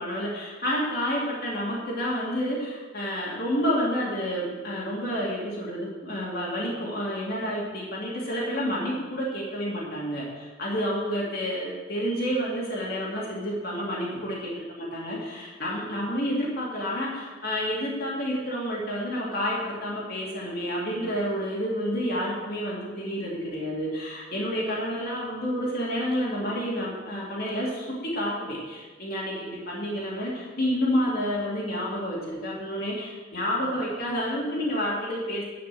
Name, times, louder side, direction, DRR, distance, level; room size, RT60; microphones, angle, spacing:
voice 1, 0.0-35.4, equal, 50° left, -5 dB, 2.5 m, -29 dB
10.5 x 5.7 x 7.6 m, 1.3 s
head